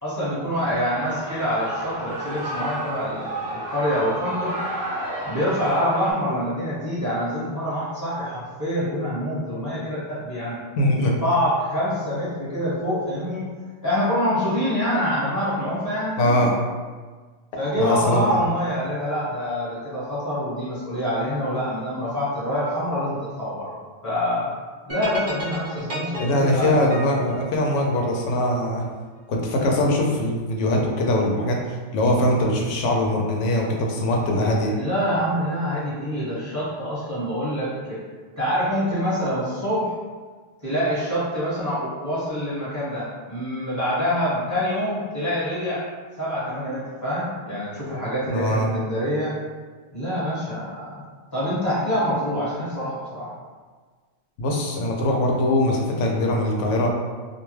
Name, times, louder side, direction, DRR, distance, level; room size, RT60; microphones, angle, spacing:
voice 1, 0.0-4.6 5.2-10.6 11.0-13.4 13.8-16.5 17.6-23.8 24.0-24.5 24.9-26.8 34.7-38.0 38.4-39.9 40.6-45.9 46.2-49.3 49.9-51.0 51.3-53.3, equal, 15° left, -11 dB, 1.0 m, -26 dB
Shout / Cheering, 0.7-6.1, right 1 dB, 80° right, 1.0 m, -32 dB
voice 2, 10.8-11.2 16.2-16.6 17.8-18.4 26.2-28.8 29.3-31.6 31.9-34.7 48.3-48.7 54.4-56.9, left 1 dB, 80° left, 0 dB, 0.9 m, -22 dB
sound 1, 24.9-28.3, right 1 dB, 45° right, 0.7 m, -33 dB
2.4 x 2.2 x 3.1 m, 1.4 s
omnidirectional pair, 1.3 m